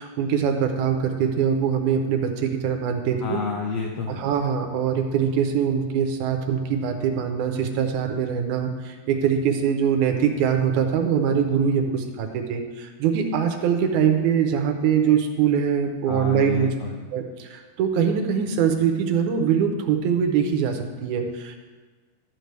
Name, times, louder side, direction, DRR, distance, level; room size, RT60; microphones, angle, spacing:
voice 1, 0.0-3.4 4.1-16.7 17.1-21.6, right 7 dB, 75° right, 5 dB, 2.1 m, -23 dB
voice 2, 3.2-4.3 16.1-17.0, left 4 dB, 80° left, 1 dB, 1.4 m, -30 dB
13.0 x 7.9 x 3.4 m, 1.4 s
omnidirectional pair, 3.9 m